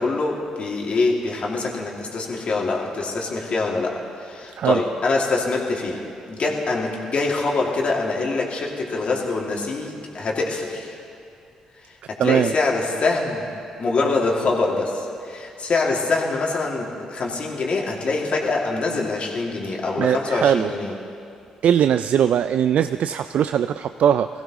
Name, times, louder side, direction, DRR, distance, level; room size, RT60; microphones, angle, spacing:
voice 1, 0.0-6.0 6.3-11.0 12.1-13.5 13.8-20.9, left 3 dB, 55° left, -2 dB, 2.5 m, -24 dB
voice 2, 12.2-12.5 20.0-20.7 21.6-24.3, right 9 dB, 65° right, 11 dB, 0.3 m, -20 dB
22.0 x 15.5 x 3.1 m, 2.5 s
hypercardioid pair, 50°, 3 cm